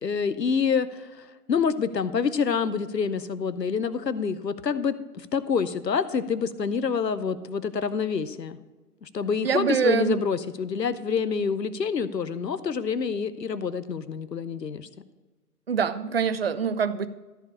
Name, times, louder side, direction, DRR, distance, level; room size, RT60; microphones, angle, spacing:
voice 1, 0.0-8.6 9.0-14.9, left 6 dB, 90° left, 14 dB, 0.8 m, -27 dB
voice 2, 9.4-10.2 15.7-17.1, right 6 dB, 40° right, 14 dB, 0.4 m, -24 dB
13.5 x 5.0 x 6.6 m, 1.2 s
figure-of-eight pair, 135°, 48 cm